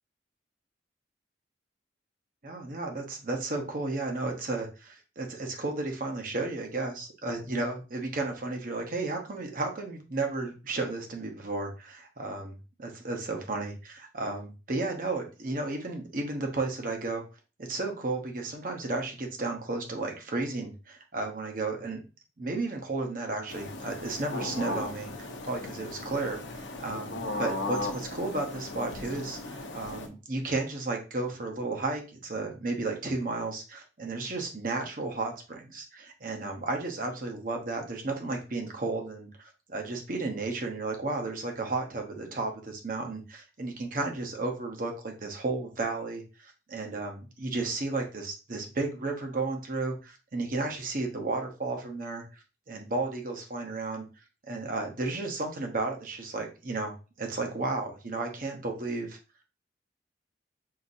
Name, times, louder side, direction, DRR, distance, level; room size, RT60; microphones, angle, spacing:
voice 1, 2.4-17.2 17.6-22.0 22.4-52.2 52.7-54.0 54.5-59.2, right 3 dB, 50° right, 3 dB, 0.9 m, -33 dB
sound 1, 23.5-30.1, left 2 dB, 85° left, 0.7 m, -36 dB
5.7 x 2.7 x 2.6 m, 0.32 s
head